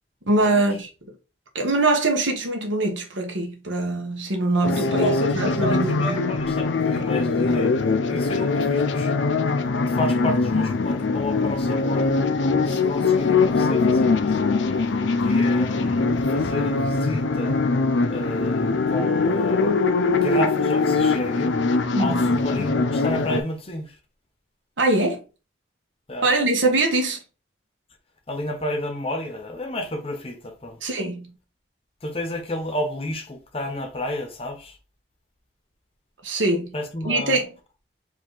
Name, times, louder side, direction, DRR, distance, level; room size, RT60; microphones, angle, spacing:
voice 1, 0.3-0.9 1.5-6.2 21.9-22.2 24.8-25.2 26.2-27.2 30.8-31.4 36.2-36.7 37.0-37.5, right 2 dB, 85° right, 1.3 m, -23 dB
sound 1, 4.6-23.4, left 3 dB, 75° left, 0.5 m, -22 dB
voice 2, 4.7-9.1 9.9-12.2 12.6-14.4 15.2-17.6 18.1-24.0 26.1-26.3 28.3-30.8 32.0-34.8 36.7-37.4, left 1 dB, 30° left, 0.8 m, -31 dB
4.6 x 2.8 x 3.8 m
head